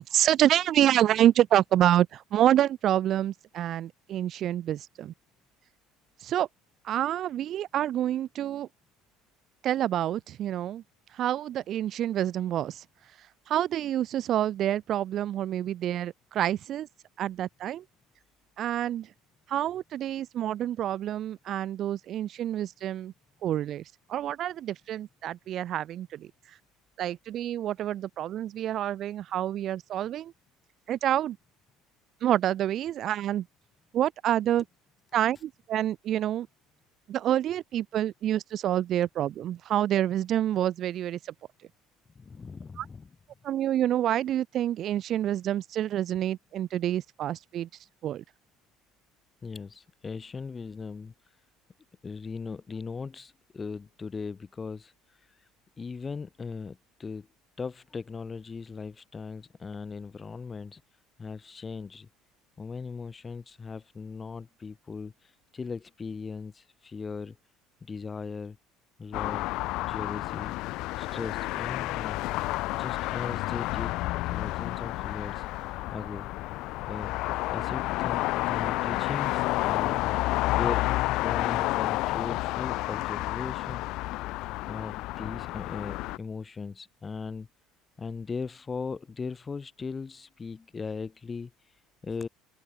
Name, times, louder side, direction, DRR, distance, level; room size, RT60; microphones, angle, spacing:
voice 1, 0.0-5.1 6.2-6.5 6.8-8.7 9.6-10.8 11.1-12.8 13.5-16.9 17.2-17.8 18.6-19.1 19.5-23.1 23.4-23.8 24.1-26.3 27.0-30.3 30.9-31.4 32.2-33.5 33.9-34.6 35.1-36.5 37.1-41.2 42.8-42.9 43.4-47.7 48.0-48.2, right 11 dB, 50° right, 0.5 m, -27 dB
voice 2, 42.2-43.1 49.4-51.1 52.0-54.9 55.8-57.3 57.6-60.8 61.2-62.1 62.6-67.4 67.8-68.6 69.0-69.5 69.8-70.5 70.9-72.2 72.7-74.0 74.3-75.4 75.9-76.3 76.8-77.1 77.5-80.0 80.5-83.8 84.7-87.5 88.0-91.5 92.0-92.3, left 5 dB, 25° left, 2.5 m, -38 dB
sound 1, 69.1-86.2, left 19 dB, 70° left, 1.1 m, -30 dB
open air
cardioid pair, 115°, 0 cm